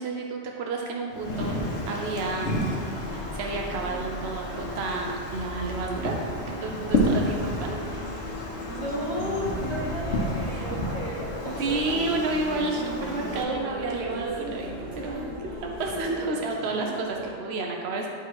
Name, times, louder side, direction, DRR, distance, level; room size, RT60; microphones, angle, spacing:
voice 1, 0.0-1.6 1.9-2.7 3.1-6.1 6.6-7.8 10.4-10.7 11.6-15.3 15.6-18.1, right 3 dB, 75° right, 0 dB, 0.9 m, -30 dB
Wind, 1.1-13.4, left 1 dB, 85° left, 1.2 m, -31 dB
sound 1, 1.3-17.3, right 1 dB, 90° right, 1.4 m, -39 dB
Bus, 3.1-16.0, left 2 dB, 45° left, 1.0 m, -42 dB
voice 2, 8.7-11.8, left 1 dB, 35° right, -6 dB, 1.6 m, -33 dB
8.8 x 3.4 x 4.7 m, 2.4 s
omnidirectional pair, 1.1 m